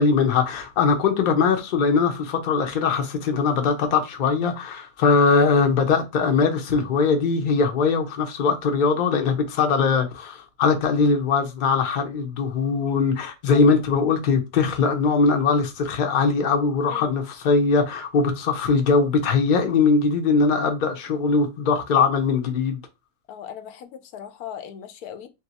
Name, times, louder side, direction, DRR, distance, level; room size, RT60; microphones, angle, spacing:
voice 1, 0.0-22.8, left 4 dB, 45° left, 0.6 m, -21 dB
voice 2, 13.5-13.8 16.9-17.2 23.3-25.3, left 9 dB, 80° left, 1.1 m, -39 dB
2.7 x 2.3 x 3.9 m
omnidirectional pair, 1.6 m